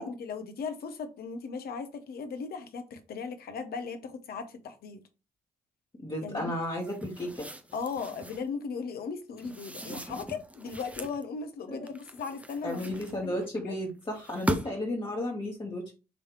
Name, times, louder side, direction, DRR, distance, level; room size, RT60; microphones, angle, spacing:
voice 1, 0.0-5.0 6.2-6.5 7.7-13.8, left 5 dB, 60° left, 0.9 m, -37 dB
voice 2, 6.0-7.5 11.7-11.9 12.6-15.9, left 1 dB, 25° left, 1.4 m, -33 dB
sound 1, 6.8-8.5 9.4-11.2 11.9-13.5 14.1-14.9, right 1 dB, 5° right, 0.7 m, -38 dB
5.4 x 3.1 x 3.0 m
hypercardioid pair, 45°, 18 cm